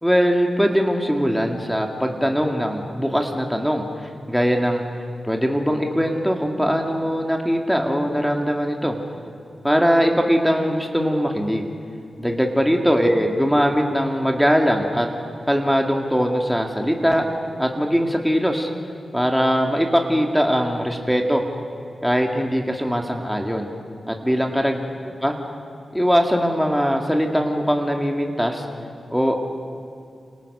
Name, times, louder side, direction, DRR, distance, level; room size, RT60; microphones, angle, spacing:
voice 1, 0.0-4.8 5.2-9.0 9.6-11.7 12.2-15.1 15.5-17.3 17.6-18.7 19.1-21.4 22.0-23.7 24.1-24.8 25.0-25.4 25.9-28.7 29.1-29.4, equal, ahead, 2 dB, 1.9 m, -21 dB
30.0 x 28.0 x 6.6 m, 2.5 s
wide cardioid pair, 155°, 0 cm